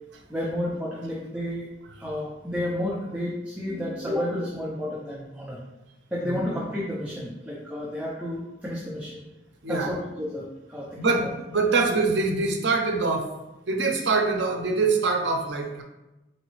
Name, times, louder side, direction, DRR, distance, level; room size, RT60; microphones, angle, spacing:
voice 1, 0.3-1.7 2.0-5.6 6.1-9.2 9.7-11.3, left 1 dB, 10° right, -5 dB, 0.5 m, -31 dB
voice 2, 11.0-13.3 13.7-15.8, right 3 dB, 70° right, 3 dB, 0.6 m, -24 dB
3.9 x 3.1 x 3.0 m, 1.0 s
head